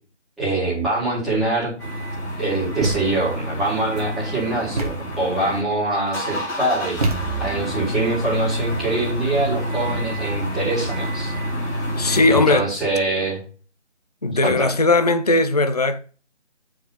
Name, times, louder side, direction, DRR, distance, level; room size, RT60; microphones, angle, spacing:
voice 1, 0.4-1.7 2.4-7.0 7.4-11.3 12.3-13.4 14.4-14.7, right 2 dB, ahead, 2.0 m, -24 dB
sound 1, 1.8-5.6 5.9-12.5, equal, 15° left, 1.9 m, -28 dB
Thump thud, 2.8-3.4 4.8-5.2 7.0-7.7, right 2 dB, 30° right, 1.2 m, -26 dB
voice 2, 12.0-12.7 14.2-16.0, left 3 dB, 35° left, 0.5 m, -18 dB
8.9 x 4.8 x 4.1 m
figure-of-eight pair, 160°, 35 cm